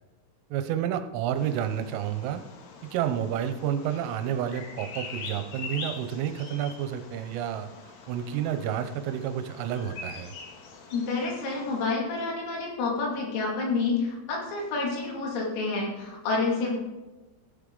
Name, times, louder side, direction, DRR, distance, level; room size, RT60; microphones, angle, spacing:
voice 1, 0.5-2.4 2.9-10.3, right 9 dB, 80° right, 8 dB, 3.3 m, -30 dB
Bird vocalization bird call bird song, 1.4-11.8, left 4 dB, 65° left, 2.6 m, -44 dB
voice 2, 10.9-16.8, left 3 dB, 85° left, -2 dB, 5.3 m, -29 dB
14.5 x 8.4 x 3.9 m, 1.1 s
omnidirectional pair, 5.9 m